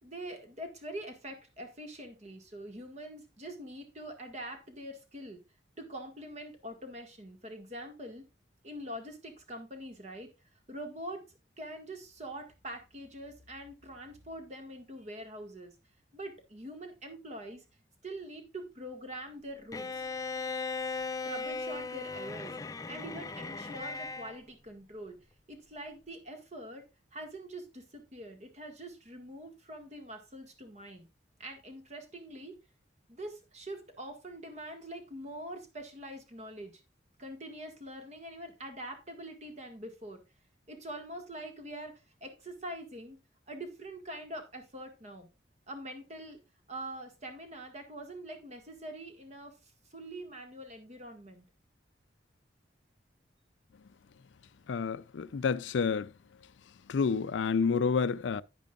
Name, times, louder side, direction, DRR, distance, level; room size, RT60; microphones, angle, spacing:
voice 1, 0.0-5.4 5.8-8.2 8.6-10.3 10.7-11.2 11.6-15.7 16.1-17.6 18.0-20.0 21.2-22.5 22.9-25.2 25.5-26.9 27.1-31.1 31.4-32.6 33.1-36.7 37.2-40.2 40.7-43.2 43.5-45.3 45.7-46.4 46.7-49.6 49.9-51.5, right 1 dB, 40° right, 1.8 m, -44 dB
Bowed string instrument, 19.7-24.4, left 4 dB, 20° left, 0.4 m, -37 dB
voice 2, 54.7-56.1 56.9-58.4, left 5 dB, 85° left, 0.4 m, -29 dB
10.5 x 9.4 x 2.4 m
head